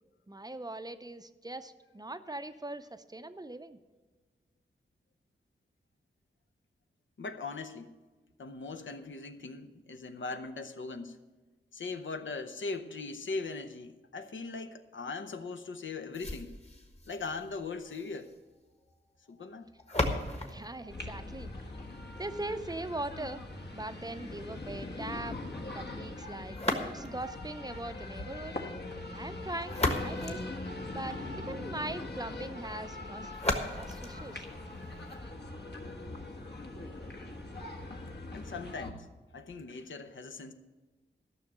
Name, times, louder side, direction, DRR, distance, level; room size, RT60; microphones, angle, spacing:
voice 1, 0.3-3.8 20.5-21.5 22.1-23.4 23.7-25.4 25.7-26.6 26.8-28.6 29.1-30.4 30.9-33.3 33.8-34.5, right 2 dB, 20° right, 11 dB, 0.5 m, -40 dB
voice 2, 7.2-8.0 8.4-11.2 11.7-16.6 17.1-18.3 19.3-19.7 38.3-39.1 39.3-40.5, left 3 dB, 80° left, 8 dB, 0.9 m, -40 dB
sound 1, 16.1-22.1 26.5-27.4 29.4-31.3 33.3-35.3, left 1 dB, 35° left, 1.4 m, -37 dB
sound 2, 20.9-38.9, left 2 dB, 60° left, 1.4 m, -42 dB
13.0 x 6.3 x 7.9 m, 1.3 s
wide cardioid pair, 100°, 20 cm